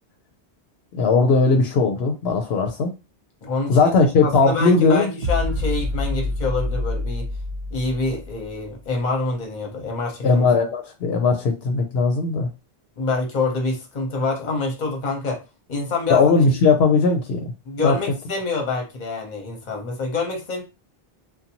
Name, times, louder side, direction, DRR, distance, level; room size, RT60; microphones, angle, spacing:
voice 1, 0.9-2.9 3.7-5.1 10.2-12.5 16.1-17.5 17.8-17.9, left 4 dB, 80° left, 0.8 m, -18 dB
voice 2, 3.4-3.9 4.2-7.3 7.7-10.4 13.0-15.4 15.7-16.3 17.7-20.6, left 3 dB, 50° left, 0.9 m, -26 dB
sound 1, 5.2-8.7, left 2 dB, 75° right, 0.8 m, -27 dB
2.6 x 2.2 x 2.8 m
omnidirectional pair, 1.0 m